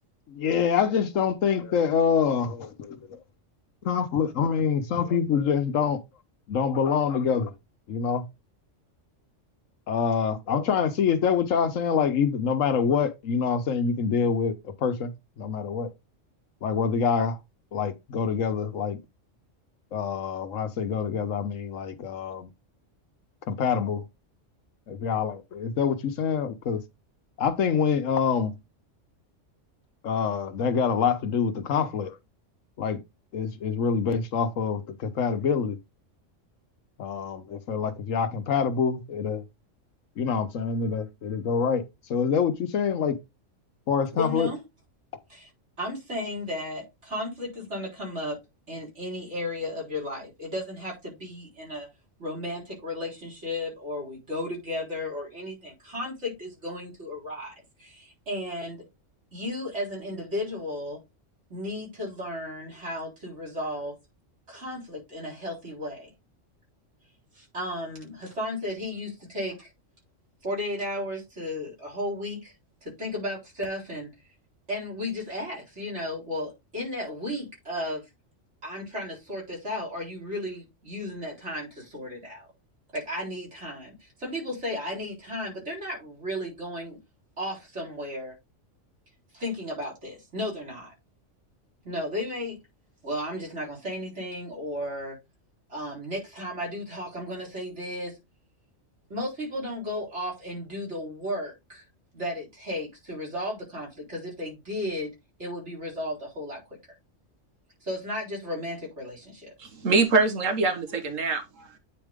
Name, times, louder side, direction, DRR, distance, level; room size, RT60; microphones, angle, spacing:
voice 1, 0.3-3.2 3.8-6.0 6.5-7.5 7.9-8.2 9.9-15.9 16.6-17.4 17.7-19.0 19.9-22.5 23.5-24.0 24.9-26.8 27.4-28.6 30.0-32.2 32.8-33.0 33.3-35.8 37.0-39.4 40.2-41.8 42.1-43.2 43.9-44.5, left 6 dB, 85° left, 1.3 m, -26 dB
voice 2, 44.1-44.6 45.3-45.5 45.8-48.4 48.7-51.9 52.2-58.9 59.3-61.0 61.5-63.9 64.5-66.1 67.4-69.7 70.4-72.5 72.8-74.1 74.7-78.0 78.6-82.4 82.9-87.0 87.4-88.3 89.3-90.9 91.8-92.6 93.0-95.2 95.7-98.2 99.1-101.8 102.1-105.1 105.4-106.6 107.8-109.5, left 1 dB, 60° right, 4.4 m, -34 dB
voice 3, 109.6-111.8, right 3 dB, 90° right, 1.7 m, -24 dB
9.0 x 4.4 x 3.6 m
omnidirectional pair, 1.3 m